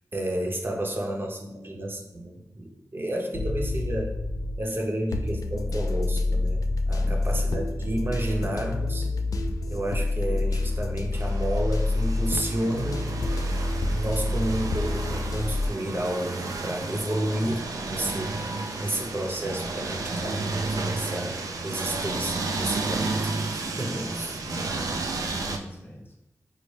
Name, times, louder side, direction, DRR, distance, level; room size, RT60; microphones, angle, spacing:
voice 1, 0.1-4.2 4.6-9.1 9.7-13.1 13.8-18.4 18.8-24.4, right 1 dB, 35° right, 1 dB, 0.7 m, -31 dB
sound 1, 3.3-4.7 5.1-15.7, left 2 dB, 70° left, 0.3 m, -27 dB
voice 2, 6.9-7.6 24.0-26.2, equal, 35° left, 0 dB, 0.7 m, -43 dB
sound 2, 11.1-25.6, right 3 dB, 70° right, 0.4 m, -32 dB
4.2 x 2.1 x 3.2 m, 0.92 s
cardioid pair, 50°, 6 cm